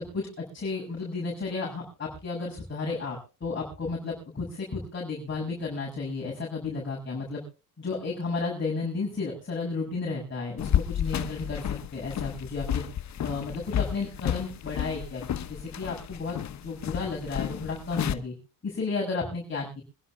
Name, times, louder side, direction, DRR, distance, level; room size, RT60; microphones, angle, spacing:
voice 1, 0.0-7.4 7.8-12.8 13.2-18.3 18.6-19.8, left 4 dB, 35° left, -4 dB, 6.6 m, -33 dB
sound 1, 10.6-18.1, left 10 dB, 50° left, 1.0 m, -31 dB
26.5 x 11.5 x 2.3 m, 0.32 s
cardioid pair, 100°, 35 cm